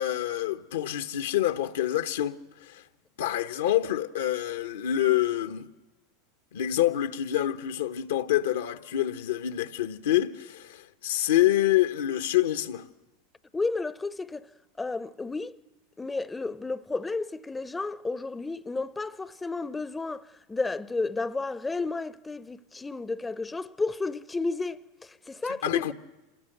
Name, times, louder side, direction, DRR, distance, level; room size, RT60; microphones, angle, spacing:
voice 1, 0.0-2.4 2.6-2.8 3.2-5.7 6.5-12.8 25.6-25.9, left 12 dB, 80° left, 1.1 m, -26 dB
voice 2, 13.5-14.5 14.8-15.6 16.0-25.9, left 3 dB, 15° left, 0.7 m, -32 dB
26.5 x 20.0 x 7.9 m
hypercardioid pair, 100°, 0 cm